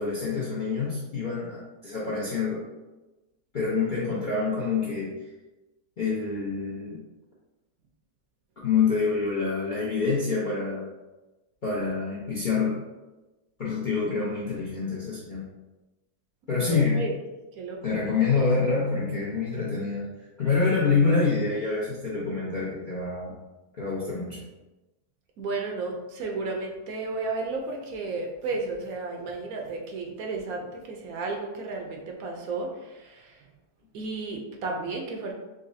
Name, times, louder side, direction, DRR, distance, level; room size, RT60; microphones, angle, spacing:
voice 1, 0.0-2.6 3.5-5.1 6.0-7.0 8.6-10.9 11.6-12.8 13.6-15.5 16.5-17.1 17.8-20.1 20.4-23.4 23.7-24.4, left 4 dB, 50° left, -7 dB, 0.6 m, -26 dB
voice 2, 16.5-17.1 17.6-18.0 25.4-33.4 33.9-35.3, right 3 dB, 70° right, 1 dB, 1.0 m, -33 dB
3.9 x 3.0 x 2.6 m, 1.1 s
omnidirectional pair, 1.7 m